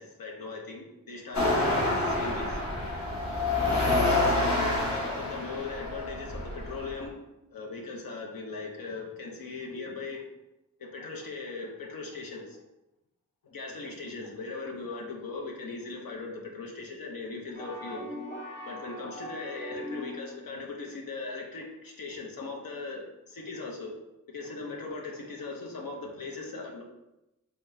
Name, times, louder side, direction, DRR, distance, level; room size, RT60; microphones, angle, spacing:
voice 1, 0.0-2.6 4.0-7.2 7.5-10.2 10.8-12.6 13.4-18.0 18.7-23.9 24.3-26.8, left 3 dB, 85° left, 0 dB, 0.7 m, -39 dB
sound 1, 1.3-7.1, left 2 dB, 55° left, 1.0 m, -28 dB
sound 2, 17.5-20.4, equal, 35° left, 1.4 m, -40 dB
3.5 x 3.5 x 2.7 m, 0.93 s
wide cardioid pair, 55°, 34 cm